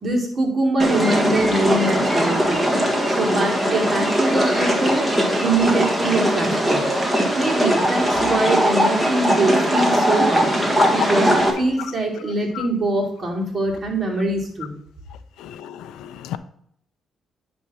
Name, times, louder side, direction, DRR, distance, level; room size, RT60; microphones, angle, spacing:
voice 1, 0.0-2.6 3.1-5.0 5.4-6.8 7.3-10.5 10.9-14.7, right 2 dB, 40° right, 2.7 m, -23 dB
sound 1, 0.8-11.5, equal, 10° right, 1.7 m, -20 dB
voice 2, 15.4-16.4, left 11 dB, 85° left, 0.5 m, -30 dB
9.9 x 3.5 x 5.8 m
cardioid pair, 90°, 0 cm